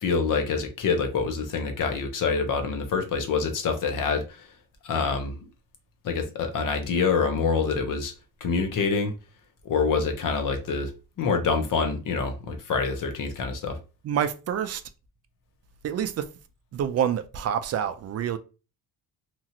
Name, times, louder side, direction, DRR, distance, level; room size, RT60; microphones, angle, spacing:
voice 1, 0.0-4.5 4.8-5.5 6.0-8.1 8.4-9.1 9.6-10.9 11.2-13.8, left 5 dB, 55° left, 0.8 m, -26 dB
voice 2, 14.0-14.8 15.8-16.3 16.7-18.4, right 9 dB, 40° right, 0.4 m, -27 dB
3.0 x 2.4 x 2.8 m
cardioid pair, 115°, 39 cm